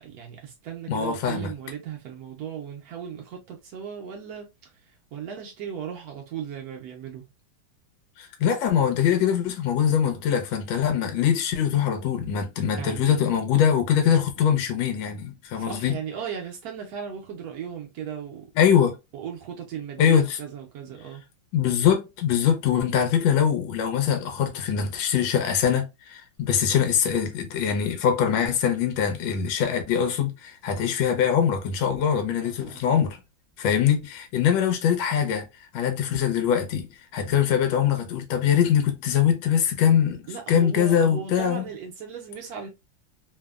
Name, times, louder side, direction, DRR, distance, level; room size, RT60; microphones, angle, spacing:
voice 1, 0.0-7.2 12.8-13.2 15.5-18.4 19.1-21.2 32.4-32.8 40.3-42.7, right 8 dB, 85° right, 0.8 m, -37 dB
voice 2, 0.9-1.5 8.2-16.0 18.6-19.0 20.0-20.4 21.5-33.2 33.6-35.4 35.7-41.7, left 8 dB, 80° left, 1.3 m, -23 dB
3.3 x 2.0 x 2.3 m
omnidirectional pair, 2.2 m